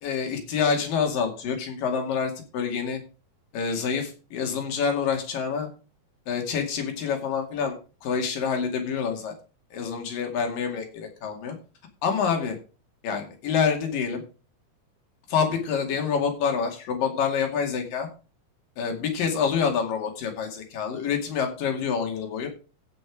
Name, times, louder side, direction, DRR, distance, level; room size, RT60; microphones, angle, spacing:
voice 1, 0.0-3.0 3.5-5.7 6.3-7.8 8.0-9.3 9.7-11.6 12.0-12.6 13.0-14.2 15.3-18.1 18.8-22.5, left 6 dB, 85° left, 3 dB, 4.1 m, -27 dB
16.0 x 5.6 x 4.9 m, 0.34 s
omnidirectional pair, 3.8 m